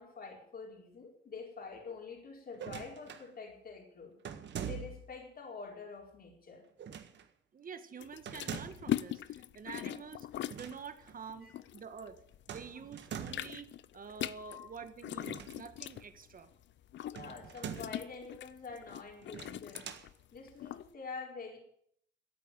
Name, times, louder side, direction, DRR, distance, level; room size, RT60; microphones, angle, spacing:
voice 1, 0.0-4.1 4.6-6.6 9.7-10.0 11.4-11.5 14.3-14.7 17.1-19.9 20.3-21.6, left 4 dB, 50° left, 0 dB, 4.6 m, -47 dB
sound 1, 2.5-3.3 4.2-5.2 6.8-7.3 8.3-8.9 10.4-10.8 11.1-11.2 12.5-13.6 15.2-16.0 17.1-18.1 19.2-20.1, right 8 dB, 65° right, 1.7 m, -44 dB
voice 2, 7.5-10.3 10.5-12.2 12.5-16.5, right 6 dB, 45° right, 10 dB, 1.7 m, -48 dB
sound 2, 8.0-12.5 12.8-20.9, left 12 dB, 65° left, 0.6 m, -41 dB
14.0 x 8.6 x 9.4 m, 0.68 s
cardioid pair, 90°, 20 cm